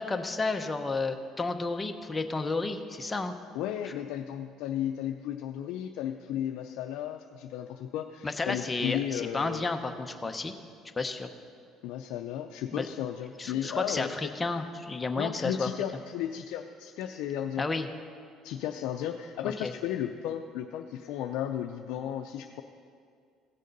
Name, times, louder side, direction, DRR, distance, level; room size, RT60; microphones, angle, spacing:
voice 1, 0.0-3.3 8.2-10.5 11.0-11.3 12.7-12.9 13.4-15.7 17.6-17.9 19.4-19.7, left 3 dB, 15° left, 6 dB, 0.8 m, -32 dB
voice 2, 3.5-9.6 11.8-14.3 15.2-17.6 18.4-22.6, left 10 dB, 80° left, 4 dB, 0.5 m, -34 dB
16.5 x 6.5 x 5.3 m, 2.3 s
cardioid pair, 115°, 0 cm